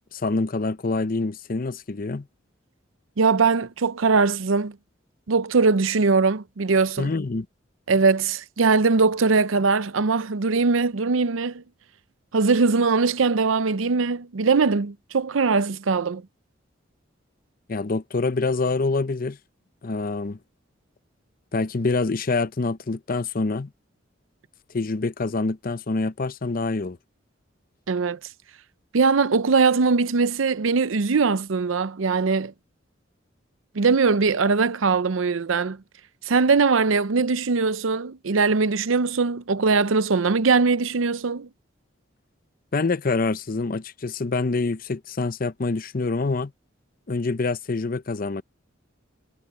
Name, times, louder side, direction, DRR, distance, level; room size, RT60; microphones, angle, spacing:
voice 1, 0.1-2.3 7.0-7.5 17.7-19.4 19.8-20.4 21.5-23.7 24.7-27.0 42.7-46.5 47.1-48.4, left 3 dB, 45° left, 0.7 m, -26 dB
voice 2, 3.2-4.8 5.3-7.1 7.9-11.6 12.3-16.2 27.9-28.2 28.9-32.5 33.7-35.8 36.3-41.5, right 4 dB, 90° right, 0.7 m, -21 dB
head